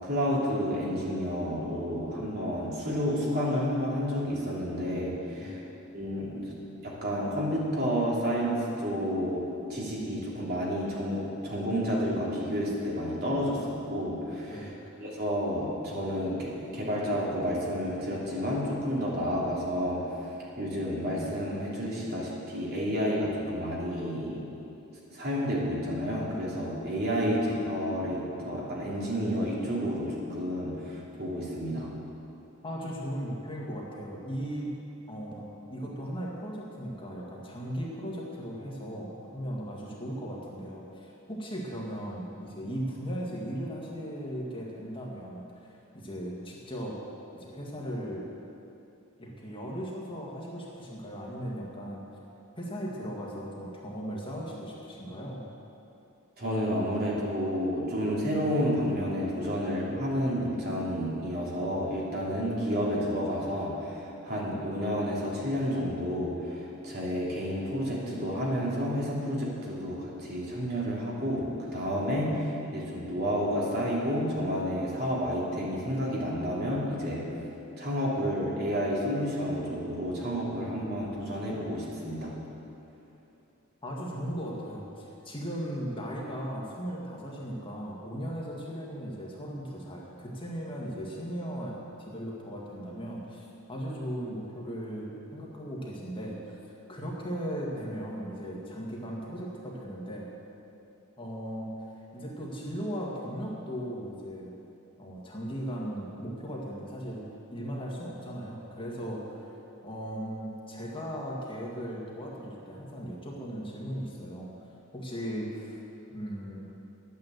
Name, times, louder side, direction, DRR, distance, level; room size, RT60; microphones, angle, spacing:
voice 1, 0.0-5.6 5.9-6.5 6.8-9.4 9.7-14.6 15.0-20.0 20.6-24.4 25.1-31.9 56.4-77.2 77.8-82.3, equal, 50° right, -5 dB, 3.1 m, -30 dB
voice 2, 32.6-34.7 35.1-35.4 35.7-47.0 47.4-48.3 49.2-52.1 52.6-55.4 83.8-96.6 96.9-100.3 101.2-101.9 102.1-104.5 105.0-109.5 109.8-115.8 116.1-116.7, equal, 25° left, -3 dB, 1.9 m, -37 dB
11.0 x 9.3 x 8.0 m, 2.8 s
head